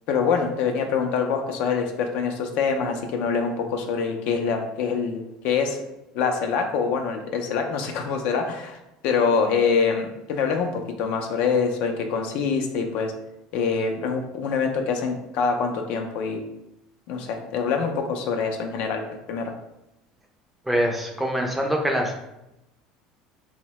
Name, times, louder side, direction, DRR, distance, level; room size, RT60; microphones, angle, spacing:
voice 1, 0.1-5.8 6.1-8.8 9.0-13.1 13.5-16.4 17.1-19.0 19.3-19.5, left 5 dB, 65° left, 4 dB, 0.4 m, -25 dB
voice 2, 20.7-22.1, equal, 5° right, 1 dB, 0.4 m, -24 dB
2.6 x 2.1 x 2.9 m, 0.92 s
supercardioid pair, 110°, 2 cm